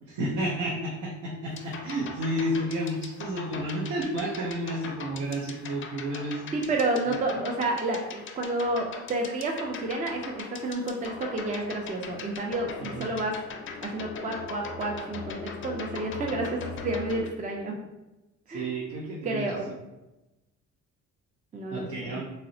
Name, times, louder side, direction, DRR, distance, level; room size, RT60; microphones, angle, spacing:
voice 1, 0.0-6.7 12.9-13.1 18.5-19.5 21.7-22.2, right 1 dB, 70° right, -4 dB, 0.7 m, -31 dB
sound 1, 1.5-17.3, left 4 dB, 40° left, 0.4 m, -40 dB
voice 2, 6.5-13.3 13.8-17.7 18.5-18.7 19.2-19.7 21.5-22.2, right 2 dB, 25° right, 1 dB, 0.4 m, -30 dB
3.8 x 2.0 x 2.6 m, 1.0 s
cardioid pair, 90°, 30 cm